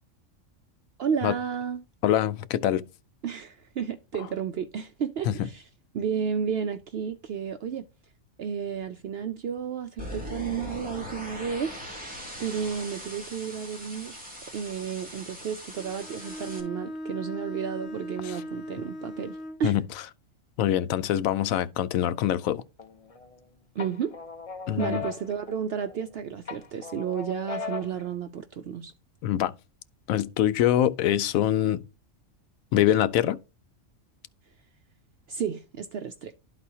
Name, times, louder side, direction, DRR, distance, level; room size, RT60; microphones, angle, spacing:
voice 1, 1.0-1.8 3.2-5.7 5.9-7.9 8.4-14.2 14.5-19.7 23.8-24.2 24.8-28.9 35.3-36.3, right 7 dB, 65° right, 0.7 m, -32 dB
voice 2, 2.0-2.8 5.3-5.5 18.3-18.4 19.6-19.8 20.6-22.6 24.7-25.0 29.2-29.5 30.1-31.8 32.7-33.4, left 11 dB, 90° left, 1.0 m, -24 dB
sound 1, 10.0-16.6, equal, 5° right, 2.3 m, -40 dB
Bowed string instrument, 15.7-19.7, equal, 60° left, 1.0 m, -38 dB
sound 2, 22.8-23.4 23.8-26.1 26.5-28.1, left 4 dB, 35° left, 0.7 m, -37 dB
12.0 x 4.1 x 2.7 m
omnidirectional pair, 1.4 m